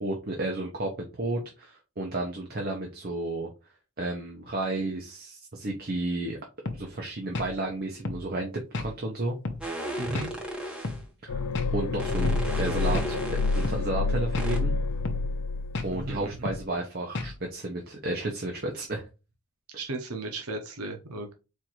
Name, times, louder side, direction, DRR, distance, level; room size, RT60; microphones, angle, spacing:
voice 1, 0.0-3.5 4.0-6.4 6.7-8.5 8.8-9.4 11.2-11.4 11.7-14.7 15.8-19.0, right 2 dB, 45° right, 2 dB, 0.7 m, -32 dB
sound 1, 6.7-6.8 7.3-7.5 8.1-8.2 8.7-8.9 9.5-9.6 10.2-10.3 10.8-11.0 11.6-11.7 12.2-12.4 12.9-13.1 13.6-13.8 14.3-14.5 15.1-15.3 15.7-15.9 16.5-16.6 17.2-17.4, left 3 dB, 55° left, 0.8 m, -32 dB
sound 2, 9.6-11.0 12.0-13.8 14.4-14.6, right 1 dB, 5° right, 1.0 m, -35 dB
voice 2, 10.0-10.3 15.9-16.5 19.8-21.3, right 2 dB, 85° right, 3 dB, 0.8 m, -35 dB
sound 3, 11.3-16.3 16.5-16.6, left 3 dB, 75° left, 0.3 m, -28 dB
4.5 x 2.5 x 4.4 m, 0.29 s
head